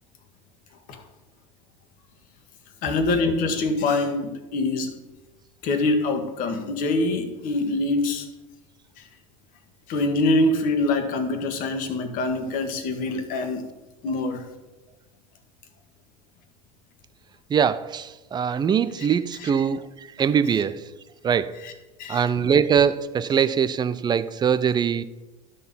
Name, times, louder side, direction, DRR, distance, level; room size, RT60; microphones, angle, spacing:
voice 1, 2.8-4.9 5.6-8.3 9.0-9.1 9.9-13.7 14.0-14.5 19.0-19.1 19.4-19.5 21.6-21.7 22.0-22.3, left 2 dB, 55° left, 1.4 m, -24 dB
voice 2, 17.5-19.8 20.2-20.8 21.2-21.6 22.1-25.0, right 7 dB, 25° right, 0.5 m, -22 dB
11.5 x 4.2 x 5.5 m
hypercardioid pair, 85°, 17 cm